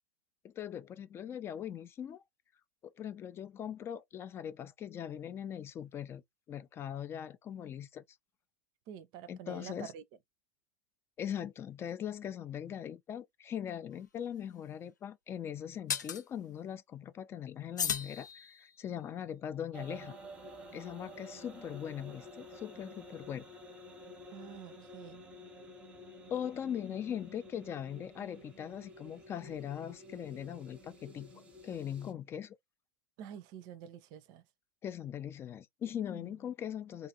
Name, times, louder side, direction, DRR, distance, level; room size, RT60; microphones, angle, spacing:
voice 1, 0.4-2.2 2.8-6.2 6.5-8.0 9.3-9.9 11.2-20.1 20.7-23.5 26.3-31.3 31.6-32.6 34.8-37.1, left 9 dB, 25° left, 0.3 m, -40 dB
voice 2, 8.9-10.0 24.3-25.3 33.2-34.4 36.1-36.4, right 9 dB, 45° right, 0.5 m, -48 dB
sound 1, 13.9-14.0 15.9-16.2 17.8-18.9, left 7 dB, 85° left, 0.5 m, -36 dB
sound 2, 19.7-32.1, equal, 10° right, 0.7 m, -51 dB
2.4 x 2.4 x 2.8 m
hypercardioid pair, 95°, 9 cm